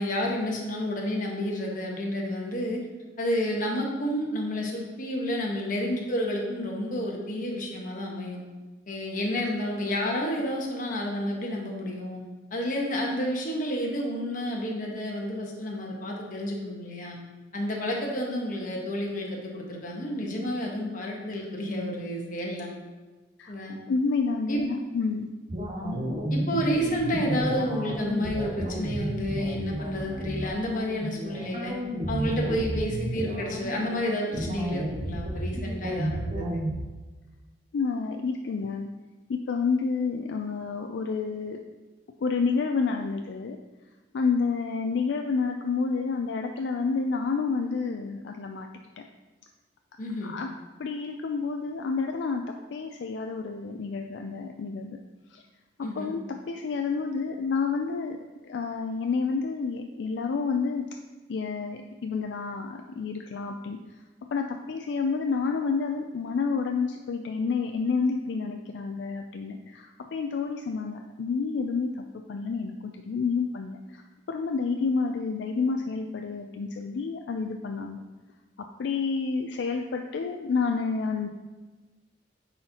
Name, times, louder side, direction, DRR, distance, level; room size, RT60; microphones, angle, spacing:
voice 1, 0.0-2.8 3.2-8.4 8.9-12.2 12.5-17.2 17.5-22.7 23.5-23.8 24.5-24.6 25.8-26.0 26.3-31.7 32.1-36.6 50.0-50.3 55.8-56.1, equal, 45° left, -1 dB, 1.1 m, -30 dB
voice 2, 23.9-25.3 37.7-38.9 39.3-41.6 42.2-43.6 44.1-48.7 49.0-49.1 50.2-50.5 50.8-52.4 52.7-55.0 55.3-55.4 56.0-56.2 56.5-58.2 58.4-60.8 61.3-63.8 64.3-74.0 74.3-78.0 78.8-81.3, left 4 dB, 75° left, 4 dB, 0.4 m, -29 dB
sound 1, 25.5-36.8, right 1 dB, 35° right, 0.9 m, -32 dB
9.4 x 4.2 x 2.8 m, 1.2 s
head